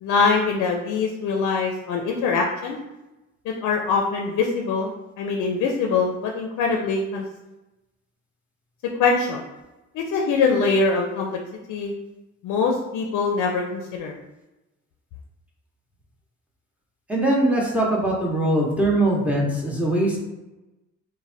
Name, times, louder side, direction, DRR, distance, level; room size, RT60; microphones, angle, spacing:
voice 1, 0.0-2.8 3.5-7.2 9.0-9.4 9.9-11.4 11.7-11.9 12.4-14.2, left 4 dB, 75° left, 1 dB, 0.5 m, -23 dB
voice 2, 17.1-20.2, right 1 dB, 5° right, -3 dB, 0.8 m, -21 dB
3.1 x 2.1 x 2.6 m, 1.0 s
cardioid pair, 90°, 30 cm